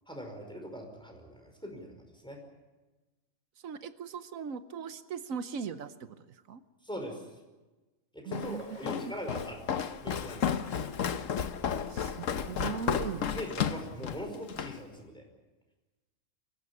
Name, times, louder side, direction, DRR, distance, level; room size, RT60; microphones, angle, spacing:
voice 1, 0.1-2.4 6.8-7.3 8.1-9.6 10.0-10.6 13.3-15.2, equal, 5° left, 2 dB, 5.1 m, -41 dB
voice 2, 3.6-6.6 8.2-9.1 11.9-13.3, right 6 dB, 90° right, 11 dB, 1.4 m, -39 dB
Walk footsteps, 8.3-14.8, left 7 dB, 75° left, 1.3 m, -33 dB
24.5 x 16.0 x 9.8 m, 1.2 s
omnidirectional pair, 1.4 m